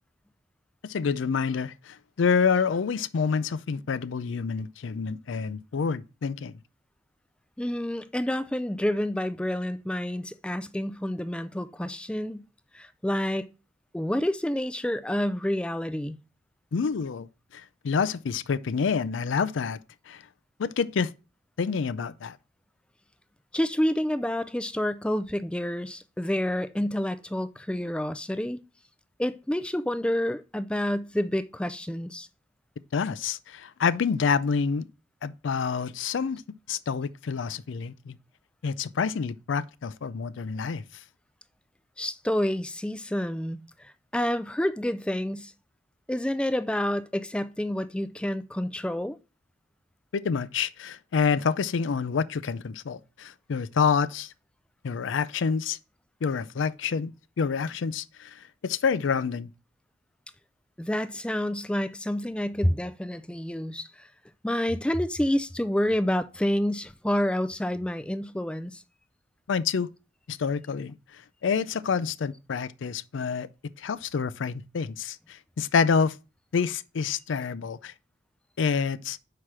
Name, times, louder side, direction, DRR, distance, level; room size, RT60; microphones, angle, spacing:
voice 1, 0.8-6.6 16.7-17.3 17.5-19.8 20.1-20.2 20.6-21.1 21.6-22.4 32.9-34.9 35.2-36.4 36.7-38.2 38.6-40.8 50.1-54.3 54.8-55.8 56.2-59.5 69.5-69.9 70.3-73.5 73.8-76.2 76.5-77.9 78.6-79.2, left 5 dB, 90° left, 0.4 m, -28 dB
voice 2, 7.6-12.5 12.7-13.5 13.9-16.2 23.5-28.6 29.2-32.3 42.0-45.5 46.1-49.2 60.8-64.1 64.4-68.8, left 1 dB, 5° left, 0.3 m, -28 dB
5.8 x 4.9 x 6.1 m
head